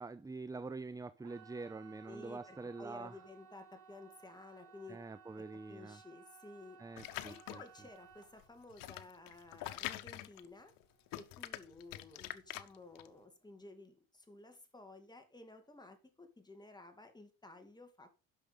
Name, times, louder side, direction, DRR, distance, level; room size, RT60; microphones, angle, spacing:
voice 1, 0.0-3.2 4.9-6.0 6.8-7.6, right 3 dB, 10° right, 0.6 m, -45 dB
sound 1, 1.2-12.0 12.3-12.9 13.3-13.4, right 7 dB, 65° right, 2.9 m, -61 dB
voice 2, 2.1-5.0 5.4-6.8 7.2-10.7 11.2-18.2, left 2 dB, 10° left, 2.7 m, -54 dB
sound 2, 7.0-7.8 8.4-10.8 11.1-13.1, left 16 dB, 90° left, 1.0 m, -45 dB
10.0 x 6.5 x 5.3 m
cardioid pair, 100°, 33 cm